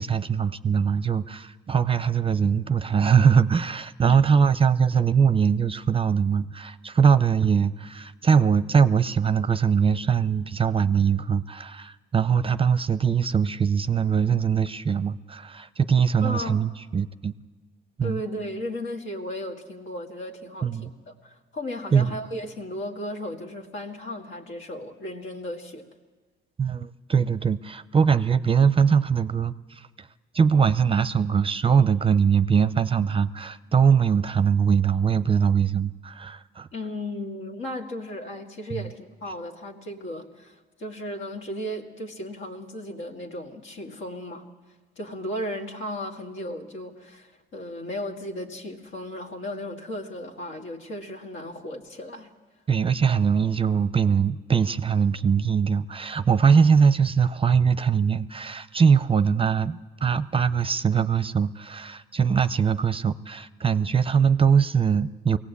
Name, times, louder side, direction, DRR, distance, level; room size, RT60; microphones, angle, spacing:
voice 1, 0.0-17.3 18.0-18.2 20.6-20.9 21.9-22.1 26.6-30.1 30.3-36.7 38.7-38.8 52.7-65.4, right 6 dB, 25° right, 14 dB, 0.6 m, -22 dB
voice 2, 16.2-16.6 18.0-25.9 36.7-44.4 45.0-52.3, left 1 dB, 75° left, 2 dB, 2.2 m, -35 dB
22.0 x 17.5 x 8.3 m, 1.3 s
cardioid pair, 90°, 20 cm